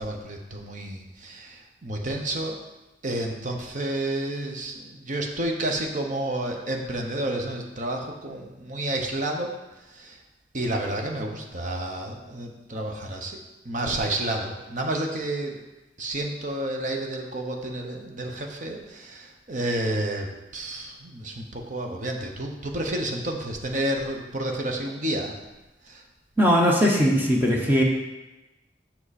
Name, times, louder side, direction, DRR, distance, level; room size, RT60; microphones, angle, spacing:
voice 1, 0.0-2.6 3.0-9.5 9.9-10.2 10.5-13.4 13.6-15.6 16.0-25.3 25.9-26.0, right 1 dB, 45° right, 2 dB, 1.0 m, -30 dB
voice 2, 26.4-27.8, equal, 10° right, -2 dB, 0.9 m, -19 dB
7.7 x 6.0 x 4.2 m, 1.0 s
head